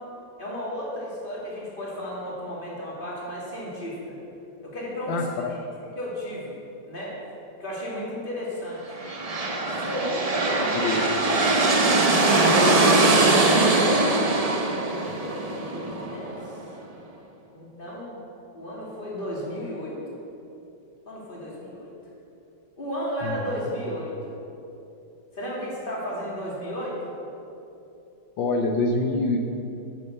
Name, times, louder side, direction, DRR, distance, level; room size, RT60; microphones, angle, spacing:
voice 1, 0.4-4.2 4.6-5.3 6.0-6.5 6.9-7.1 7.6-8.8 9.8-10.9 11.6-12.8 14.5-16.4 17.5-18.1 18.5-20.2 21.1-21.9 22.8-24.4 25.3-27.1, equal, 30° left, -5 dB, 2.5 m, -34 dB
voice 2, 5.1-5.6 10.8-11.2 23.2-23.4 28.4-29.4, left 2 dB, 85° left, 4 dB, 1.5 m, -25 dB
sound 1, 8.9-16.6, right 2 dB, 55° right, 0.4 m, -21 dB
9.8 x 7.1 x 6.7 m, 2.9 s
omnidirectional pair, 2.0 m